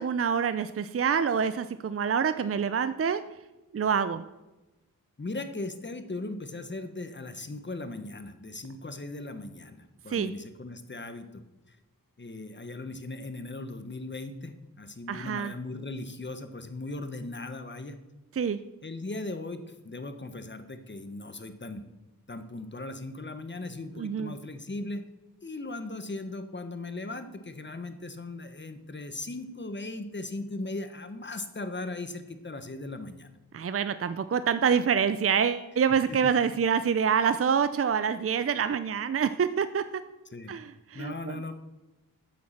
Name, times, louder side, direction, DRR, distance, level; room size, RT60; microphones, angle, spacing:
voice 1, 0.0-3.2 3.7-4.2 10.1-10.3 15.1-15.5 18.3-18.6 24.0-24.3 33.5-39.8 40.5-41.4, right 7 dB, 40° right, 12 dB, 0.5 m, -26 dB
voice 2, 5.2-11.4 11.7-11.8 12.2-18.0 18.8-21.8 22.3-25.0 25.4-33.3 36.1-36.2 40.3-40.5 40.9-41.5, left 2 dB, 35° left, 9 dB, 1.2 m, -38 dB
9.9 x 7.6 x 7.3 m, 1.0 s
wide cardioid pair, 80°, 34 cm